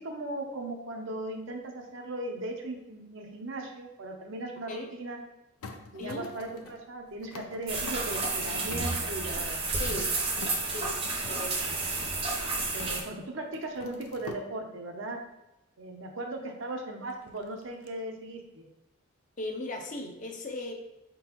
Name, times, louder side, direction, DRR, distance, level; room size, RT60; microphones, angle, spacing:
voice 1, 0.0-5.2 5.9-9.9 12.7-15.2 15.8-18.7, right 2 dB, 60° right, 3 dB, 0.7 m, -38 dB
sound 1, 5.6-13.2 13.4-14.4 17.1-17.9, left 3 dB, 90° left, 0.5 m, -46 dB
sound 2, 7.7-13.0, right 3 dB, 25° right, 0.7 m, -31 dB
voice 2, 9.8-10.1 10.7-11.0 11.3-11.8 19.4-20.7, left 2 dB, 40° left, 3 dB, 0.6 m, -37 dB
4.3 x 3.8 x 3.0 m, 0.95 s
head